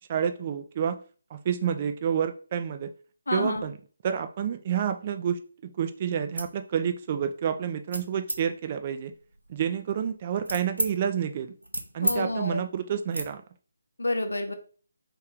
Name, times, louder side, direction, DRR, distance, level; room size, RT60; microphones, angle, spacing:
voice 1, 0.1-1.0 1.3-2.9 3.3-3.8 4.0-9.1 9.5-11.5 11.9-13.4, right 8 dB, 30° right, 8 dB, 0.4 m, -29 dB
voice 2, 3.3-3.7 12.0-12.6 14.0-14.5, left 2 dB, 70° left, 6 dB, 0.7 m, -29 dB
sound 1, 6.2-6.6 7.0-7.3 7.9-8.4 9.1-10.9 11.3-12.2 12.5-12.7 13.1-13.3, right 1 dB, 90° right, 0.8 m, -33 dB
3.2 x 3.0 x 3.7 m, 0.40 s
figure-of-eight pair, 150°, 0 cm